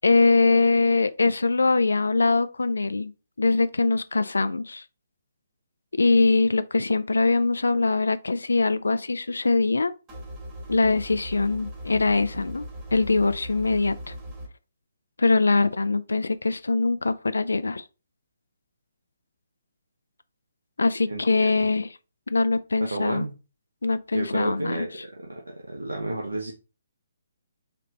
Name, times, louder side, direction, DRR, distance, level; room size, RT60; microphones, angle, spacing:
voice 1, 0.0-3.1 3.4-4.8 6.0-9.9 10.7-14.1 15.2-17.8 20.8-22.0 22.3-23.3 23.8-24.9, left 3 dB, 65° left, 0.4 m, -22 dB
sound 1, 10.1-14.5, equal, 15° right, 1.0 m, -39 dB
voice 2, 21.1-21.7 22.9-23.3 24.1-25.4 25.7-26.5, right 2 dB, 75° right, 0.9 m, -31 dB
4.2 x 3.1 x 3.8 m
figure-of-eight pair, 135°, 0 cm